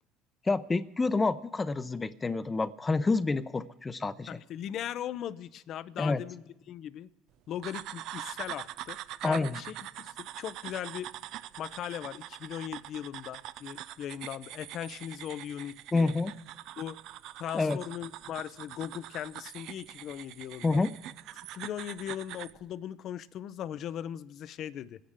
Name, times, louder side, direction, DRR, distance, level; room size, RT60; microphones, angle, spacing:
voice 1, 0.5-4.4 6.0-6.2 9.2-9.6 15.9-16.3 17.5-17.8 20.6-20.9, left 3 dB, 25° left, 13 dB, 0.7 m, -28 dB
voice 2, 4.3-7.1 7.5-9.0 9.3-11.1 11.6-16.1 16.8-17.0 17.4-20.8 21.5-25.0, left 10 dB, 60° left, 17 dB, 0.6 m, -39 dB
sound 1, 7.6-22.6, right 13 dB, 70° right, 0.4 m, -43 dB
26.0 x 10.5 x 3.7 m, 1.0 s
supercardioid pair, 75°, 0 cm